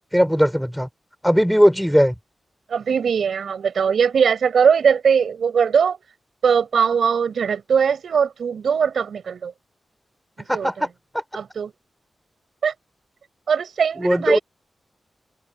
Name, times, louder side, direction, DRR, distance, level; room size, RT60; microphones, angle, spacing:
voice 1, 0.1-0.9 1.2-2.1 10.5-10.9 14.0-14.4, equal, ahead, 3.7 m, -18 dB
voice 2, 2.7-6.0 6.4-9.5 10.5-10.9 11.3-11.7 12.6-12.7 13.5-14.4, right 6 dB, 90° right, 5.2 m, -20 dB
wide cardioid pair, 145°, 0 cm